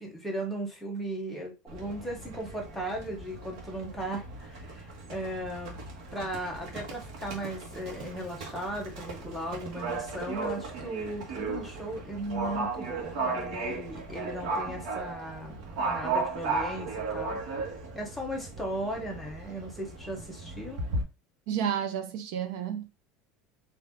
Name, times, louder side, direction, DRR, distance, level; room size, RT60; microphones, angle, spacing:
voice 1, 0.0-5.8 6.1-20.8, right 1 dB, 5° left, 1.1 m, -37 dB
Livestock farm animals working animals, 1.7-21.0, right 3 dB, 85° right, 1.3 m, -36 dB
voice 2, 21.5-22.9, right 9 dB, 70° right, 0.7 m, -31 dB
4.5 x 2.7 x 3.7 m
cardioid pair, 165°, 4 cm